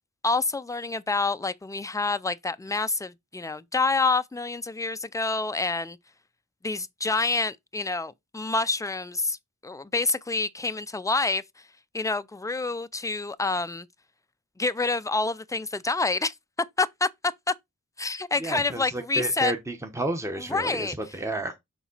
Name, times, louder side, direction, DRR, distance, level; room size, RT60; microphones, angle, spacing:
voice 1, 0.2-6.0 6.6-9.4 9.6-11.4 11.9-13.9 14.6-16.3 16.8-17.1 17.5-17.6 18.0-19.5 20.4-20.9, left 3 dB, 10° left, 0.4 m, -27 dB
voice 2, 18.4-21.5, right 2 dB, 10° right, 1.0 m, -31 dB
6.0 x 4.1 x 3.9 m
wide cardioid pair, 105°, 30 cm